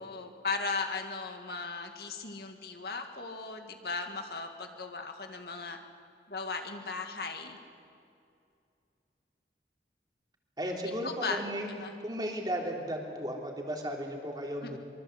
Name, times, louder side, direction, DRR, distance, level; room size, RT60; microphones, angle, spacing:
voice 1, 0.0-5.8 6.3-7.6 11.0-11.4 11.8-11.9 14.6-14.8, left 4 dB, 65° left, 5 dB, 2.0 m, -37 dB
voice 2, 10.6-11.7 12.0-14.8, equal, 25° right, 0 dB, 3.4 m, -35 dB
24.5 x 24.0 x 8.1 m, 2.5 s
head